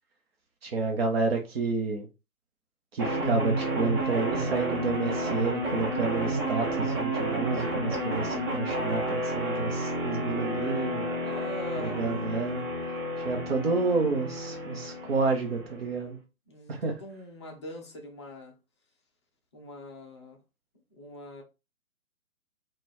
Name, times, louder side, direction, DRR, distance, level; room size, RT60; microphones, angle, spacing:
voice 1, 0.6-2.1 2.9-11.2 11.8-12.6 13.2-16.2 16.7-16.9, right 4 dB, 45° right, 1.0 m, -30 dB
sound 1, 3.0-16.0, right 1 dB, 15° right, 0.6 m, -31 dB
voice 2, 11.2-12.2 16.5-18.6 19.5-20.4 20.9-21.4, left 1 dB, 20° left, 0.5 m, -42 dB
4.0 x 2.5 x 3.2 m
figure-of-eight pair, 135°, 43 cm